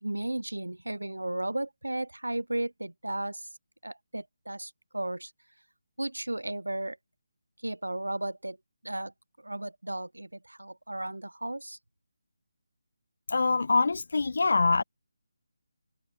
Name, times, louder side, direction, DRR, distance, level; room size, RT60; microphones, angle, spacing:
voice 1, 0.0-3.5 3.8-5.3 6.0-7.0 7.6-8.6 8.8-9.1 9.4-11.8, right 1 dB, 80° right, 0.8 m, -34 dB
voice 2, 13.3-14.8, left 3 dB, 55° left, 0.4 m, -24 dB
figure-of-eight pair, 155°, 0 cm